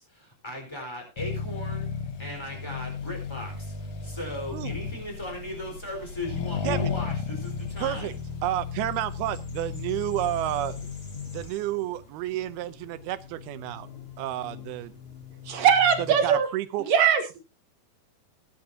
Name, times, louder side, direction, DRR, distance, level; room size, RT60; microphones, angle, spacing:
voice 1, 0.0-1.9 2.2-3.7 4.0-8.1, left 1 dB, 5° left, 2 dB, 4.2 m, -37 dB
Accelerating revving vroom, 1.2-11.5, left 6 dB, 60° left, 1.8 m, -34 dB
sound 1, 3.0-16.4, left 6 dB, 25° left, 4.5 m, -49 dB
voice 2, 7.8-8.1 8.4-10.9 11.3-13.9 14.2-14.9 16.2-16.8, right 14 dB, 90° right, 13 dB, 2.7 m, -30 dB
voice 3, 15.5-16.5 16.8-17.4, right 7 dB, 65° right, 6 dB, 3.1 m, -21 dB
19.5 x 10.0 x 2.8 m, 0.29 s
omnidirectional pair, 4.3 m